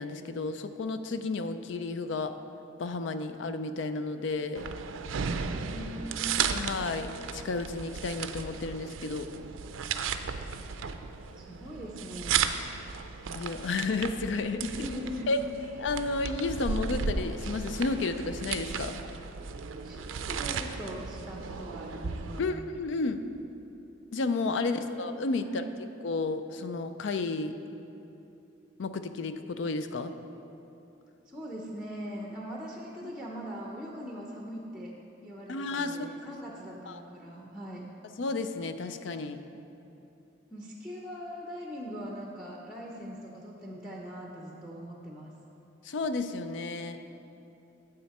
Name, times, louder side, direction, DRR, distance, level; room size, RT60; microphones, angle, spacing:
voice 1, 0.0-2.3 2.8-4.7 6.4-9.3 13.3-14.7 15.3-15.4 15.8-19.0 22.4-23.2 24.1-25.7 26.0-27.6 28.8-30.1 33.0-33.1 35.5-36.4 36.9-37.0 38.2-39.4 45.8-47.0, left 3 dB, 70° left, 9 dB, 0.4 m, -32 dB
sound 1, 4.5-22.4, right 6 dB, 85° right, 0.4 m, -35 dB
voice 2, 5.4-6.3 11.4-12.5 14.7-15.3 19.8-22.6 24.7-24.8 25.4-25.7 31.3-34.9 35.2-37.9 40.5-45.3, equal, 5° right, -1 dB, 0.6 m, -41 dB
9.2 x 7.8 x 4.2 m, 2.9 s
head